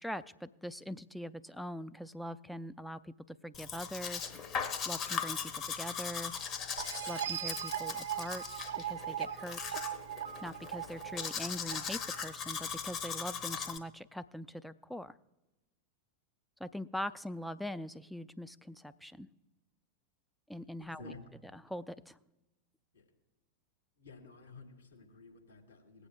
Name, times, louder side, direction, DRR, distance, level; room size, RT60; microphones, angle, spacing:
voice 1, 0.0-4.3 4.9-6.3 7.1-9.6 10.4-15.2 16.6-19.3 20.5-21.1 21.5-22.2, equal, ahead, 13 dB, 0.4 m, -42 dB
Domestic sounds home sounds, 3.5-13.8, left 6 dB, 30° left, 0.9 m, -39 dB
sound 1, 6.8-12.3, right 10 dB, 65° right, 0.5 m, -39 dB
voice 2, 20.8-21.2 22.9-23.1 24.0-26.1, left 3 dB, 80° left, 0 dB, 2.0 m, -52 dB
20.0 x 8.2 x 2.2 m, 1.0 s
figure-of-eight pair, 90°, 0 cm